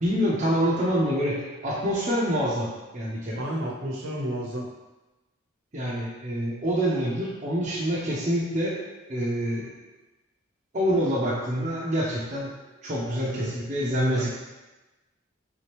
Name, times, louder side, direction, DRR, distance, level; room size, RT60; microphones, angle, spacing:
voice 1, 0.0-3.4 5.7-8.8 9.1-9.8 10.7-12.5 12.8-14.3, equal, 35° right, -6 dB, 0.6 m, -26 dB
voice 2, 3.4-4.7 13.1-13.5 14.2-14.3, right 1 dB, 60° right, -3 dB, 0.8 m, -32 dB
3.5 x 2.9 x 3.3 m, 1.1 s
head